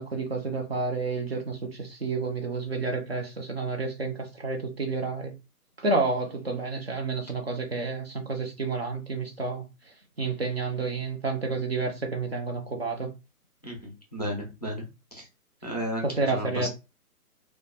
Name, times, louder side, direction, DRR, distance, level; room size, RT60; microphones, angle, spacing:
voice 1, 0.0-5.3 5.8-9.6 10.2-13.1 16.0-16.7, right 3 dB, 45° right, 0.4 m, -30 dB
voice 2, 13.6-14.8 15.1-15.3 15.6-16.7, equal, 30° left, 0.4 m, -33 dB
2.2 x 2.2 x 2.6 m
figure-of-eight pair, 145°, 46 cm